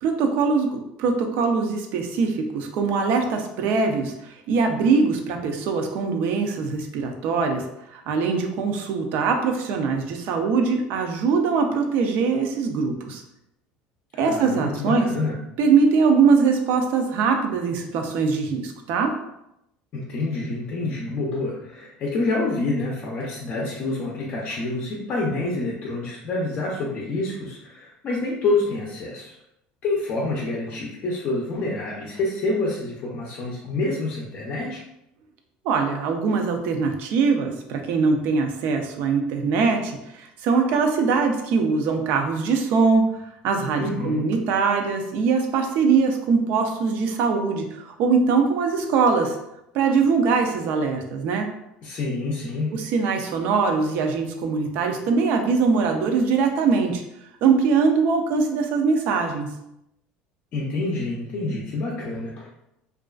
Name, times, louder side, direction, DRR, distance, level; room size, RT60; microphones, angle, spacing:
voice 1, 0.0-7.6 7.9-13.2 14.2-15.1 15.6-19.1 35.6-43.0 43.4-49.4 49.7-51.5 52.7-57.0 57.4-59.5, right 5 dB, 60° right, 4 dB, 0.4 m, -22 dB
voice 2, 14.1-15.4 19.9-29.4 29.8-34.8 43.8-44.3 51.8-52.8 60.5-62.5, left 2 dB, 40° left, -4 dB, 0.5 m, -27 dB
2.4 x 2.3 x 2.3 m, 0.82 s
cardioid pair, 130°, 4 cm